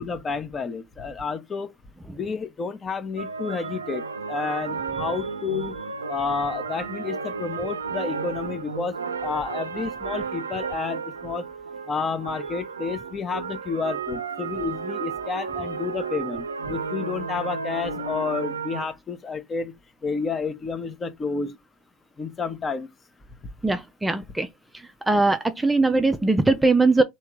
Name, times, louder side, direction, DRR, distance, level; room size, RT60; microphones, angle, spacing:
voice 1, 0.0-1.7 2.1-5.8 6.1-9.0 9.2-11.4 11.9-19.7 20.0-21.6 22.2-22.9, left 5 dB, 25° left, 0.9 m, -30 dB
sound 1, 3.2-18.9, right 5 dB, 85° right, 0.5 m, -33 dB
voice 2, 23.6-24.5 25.1-27.0, right 3 dB, 10° right, 0.5 m, -20 dB
3.4 x 2.9 x 4.5 m
hypercardioid pair, 80°, 0 cm